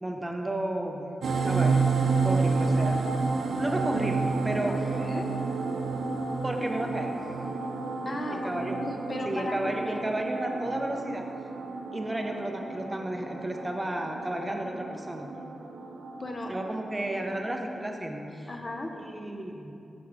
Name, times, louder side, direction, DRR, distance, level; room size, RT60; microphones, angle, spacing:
voice 1, 0.0-1.1 1.4-1.8 2.2-3.0 3.6-4.7 6.4-7.2 8.3-8.8 9.3-11.2 11.9-15.3 16.5-18.5 19.0-19.7, right 1 dB, 15° right, 2 dB, 0.5 m, -32 dB
sound 1, 1.2-17.5, right 4 dB, 80° right, 0.4 m, -30 dB
voice 2, 4.7-5.3 8.1-9.7 16.2-16.5 18.5-18.9, left 2 dB, 35° left, 3 dB, 0.6 m, -36 dB
6.0 x 4.6 x 4.7 m, 2.6 s
wide cardioid pair, 90°, 0 cm